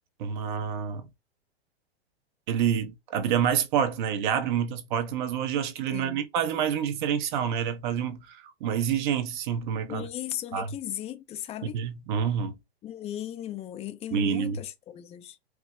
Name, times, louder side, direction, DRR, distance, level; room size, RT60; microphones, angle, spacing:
voice 1, 0.2-1.1 2.5-10.1 10.5-10.7 11.6-12.6 14.1-14.6, right 8 dB, 50° right, 0.9 m, -28 dB
voice 2, 5.9-6.2 9.9-11.8 12.8-15.4, left 12 dB, 20° left, 0.5 m, -37 dB
4.7 x 2.1 x 3.7 m
hypercardioid pair, 115°, 32 cm